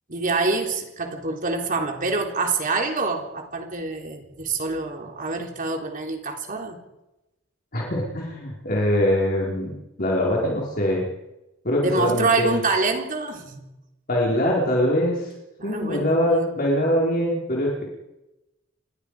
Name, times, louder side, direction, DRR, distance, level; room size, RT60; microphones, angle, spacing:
voice 1, 0.1-6.8 11.8-13.7 15.6-16.5, right 3 dB, 40° right, 2 dB, 3.8 m, -26 dB
voice 2, 7.7-11.1 11.6-12.5 14.1-15.3 15.6-17.9, equal, 45° left, -4 dB, 4.7 m, -23 dB
28.5 x 21.5 x 5.0 m, 0.95 s
head